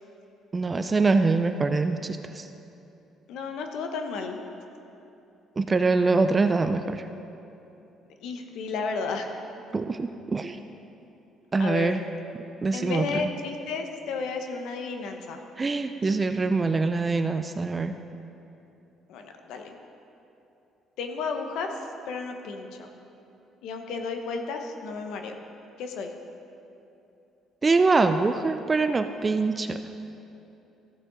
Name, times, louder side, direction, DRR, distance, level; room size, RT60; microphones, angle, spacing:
voice 1, 0.5-2.5 5.6-7.0 9.7-10.6 11.5-12.0 12.6-13.3 15.6-17.9 27.6-29.8, right 3 dB, 20° right, 8 dB, 0.3 m, -24 dB
voice 2, 3.3-4.4 8.2-9.3 11.6-12.0 12.7-15.4 19.1-19.7 21.0-21.7 22.1-22.9 23.6-25.4 25.8-26.1, left 4 dB, 80° left, 4 dB, 0.9 m, -32 dB
15.0 x 6.2 x 3.9 m, 2.9 s
cardioid pair, 140°, 0 cm